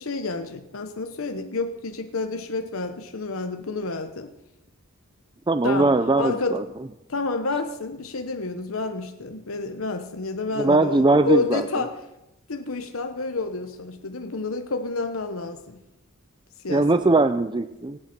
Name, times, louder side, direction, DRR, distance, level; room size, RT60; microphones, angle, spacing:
voice 1, 0.0-4.3 5.6-6.6 7.1-12.0 12.5-15.8 16.6-16.9, left 3 dB, 90° left, 1.0 m, -29 dB
voice 2, 5.5-6.6 10.6-11.6 16.7-18.0, right 2 dB, 20° right, 0.5 m, -20 dB
25.0 x 8.9 x 6.0 m
head